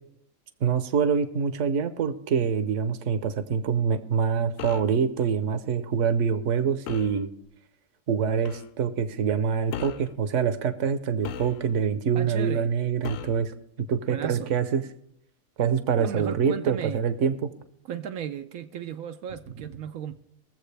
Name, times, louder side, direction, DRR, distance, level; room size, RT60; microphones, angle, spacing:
voice 1, 0.6-7.3 8.1-13.5 13.9-14.8 15.6-17.5, right 6 dB, 65° right, 1.1 m, -25 dB
sound 1, 4.6-5.0 6.9-7.2 8.4-8.7 9.7-10.1 11.2-11.9 13.0-13.5, left 8 dB, 75° left, 1.0 m, -37 dB
voice 2, 12.1-12.7 14.1-14.5 15.9-17.0 17.9-20.2, right 8 dB, 85° right, 1.1 m, -35 dB
22.5 x 7.5 x 3.3 m
omnidirectional pair, 1.4 m